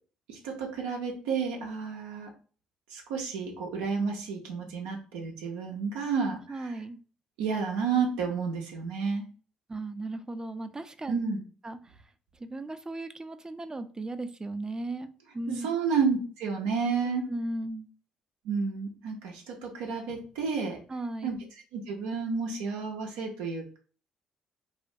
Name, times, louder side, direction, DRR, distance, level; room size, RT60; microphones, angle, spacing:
voice 1, 0.3-2.3 2.9-6.8 7.4-9.2 11.1-11.4 15.5-17.2 18.4-20.8 21.2-21.4 21.7-23.8, right 5 dB, 80° right, 0 dB, 0.5 m, -31 dB
voice 2, 6.5-7.0 9.7-11.2 11.6-11.8 12.4-15.7 17.1-17.9 20.9-21.3, right 2 dB, 20° right, 10 dB, 0.3 m, -36 dB
2.4 x 2.1 x 2.7 m, 0.39 s
hypercardioid pair, 55°, 3 cm